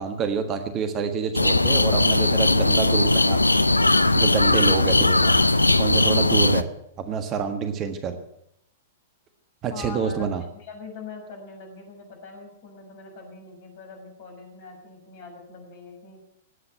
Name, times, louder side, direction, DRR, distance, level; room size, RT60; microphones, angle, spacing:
voice 1, 0.0-3.4 4.1-5.4 5.8-6.7 7.0-8.2 9.6-10.4, right 6 dB, 30° right, 8 dB, 1.5 m, -27 dB
sound 1, 1.3-6.6, left 2 dB, 85° left, 0.6 m, -19 dB
voice 2, 9.7-16.2, left 4 dB, 45° left, 2 dB, 6.4 m, -42 dB
18.0 x 8.7 x 9.1 m, 0.76 s
figure-of-eight pair, 105°, 0 cm